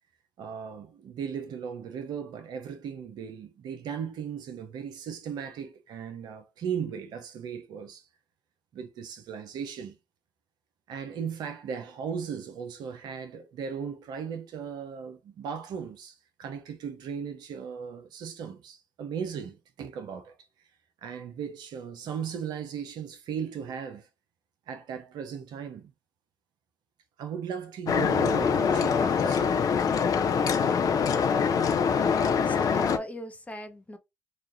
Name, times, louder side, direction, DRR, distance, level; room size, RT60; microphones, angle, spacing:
voice 1, 0.4-8.0 8.7-10.0 10.9-20.3 21.0-24.1 24.7-25.9 27.2-29.7, right 7 dB, 70° right, 0.7 m, -37 dB
sound 1, 27.9-33.0, left 6 dB, 55° left, 0.6 m, -24 dB
voice 2, 32.0-34.0, equal, 20° left, 0.9 m, -39 dB
3.0 x 2.4 x 3.8 m
hypercardioid pair, 50°, 8 cm